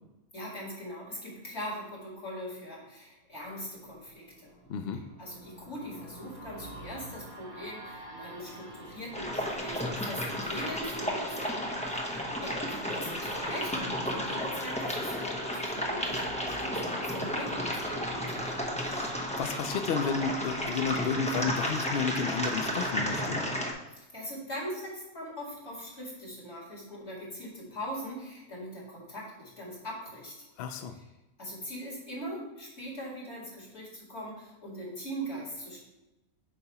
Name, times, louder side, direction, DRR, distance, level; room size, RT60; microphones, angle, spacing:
voice 1, 0.3-4.5 5.2-11.6 11.9-18.7 23.9-30.5 31.4-35.8, equal, 50° left, -5 dB, 2.5 m, -41 dB
sound 1, 3.4-21.2 21.6-21.7, right 1 dB, 65° right, 2.4 m, -48 dB
voice 2, 4.7-5.0 18.8-23.4 30.6-31.0, left 6 dB, 70° left, 7 dB, 0.5 m, -32 dB
sound 2, 9.1-23.7, equal, 10° left, 0.5 m, -33 dB
8.5 x 2.9 x 5.4 m, 0.99 s
omnidirectional pair, 1.5 m